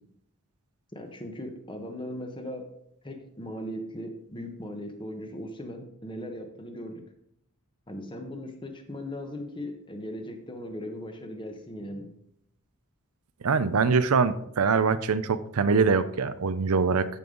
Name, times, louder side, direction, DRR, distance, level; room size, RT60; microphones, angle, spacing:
voice 1, 0.9-2.7 3.0-7.0 7.9-12.1, equal, 20° left, 5 dB, 1.1 m, -38 dB
voice 2, 13.4-17.1, right 5 dB, 80° right, 13 dB, 0.6 m, -23 dB
13.5 x 5.4 x 3.8 m, 0.73 s
head